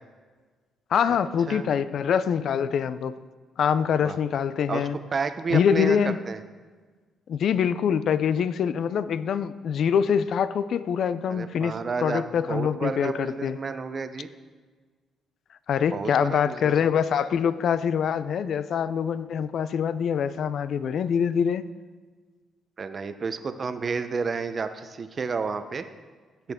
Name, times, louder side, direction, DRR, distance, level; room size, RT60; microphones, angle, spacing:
voice 1, 0.9-3.1 3.6-5.0 5.5-6.2 7.3-13.6 15.7-21.6, left 7 dB, 65° left, 15 dB, 0.4 m, -24 dB
voice 2, 5.1-6.4 11.3-12.2 12.5-14.3 15.9-16.7 22.8-25.8, right 5 dB, 40° right, 10 dB, 0.7 m, -31 dB
16.0 x 5.8 x 3.6 m, 1.4 s
cardioid pair, 90°, 0 cm